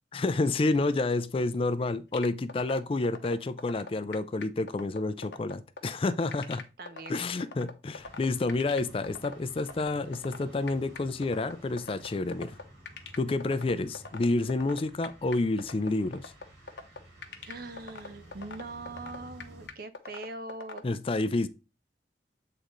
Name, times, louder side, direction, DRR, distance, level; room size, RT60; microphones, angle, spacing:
voice 1, 0.1-6.7 7.1-12.6 13.2-16.3 20.8-21.5, left 2 dB, 30° left, 0.4 m, -29 dB
sound 1, 2.1-20.8, left 4 dB, 80° left, 0.9 m, -41 dB
voice 2, 6.8-7.2 17.4-20.8, right 2 dB, 55° right, 0.7 m, -42 dB
sound 2, 7.9-19.7, right 1 dB, 75° right, 3.4 m, -53 dB
8.2 x 3.8 x 3.1 m
head